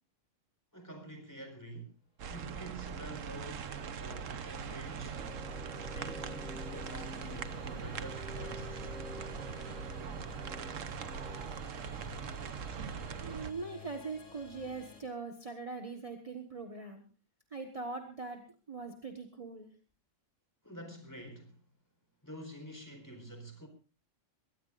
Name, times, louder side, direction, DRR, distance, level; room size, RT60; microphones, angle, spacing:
voice 1, 0.7-1.9 2.3-5.3 5.7-8.9 20.6-21.6 22.2-23.7, right 1 dB, 15° left, 4.3 m, -48 dB
sound 1, 2.2-13.5, right 7 dB, 80° right, 1.4 m, -41 dB
sound 2, 3.0-15.0, left 6 dB, 80° left, 3.9 m, -54 dB
sound 3, 5.1-11.6, left 1 dB, ahead, 5.1 m, -48 dB
voice 2, 13.2-17.0 17.5-18.4 18.7-19.7, right 4 dB, 30° right, 1.5 m, -41 dB
22.5 x 18.0 x 2.5 m
omnidirectional pair, 1.3 m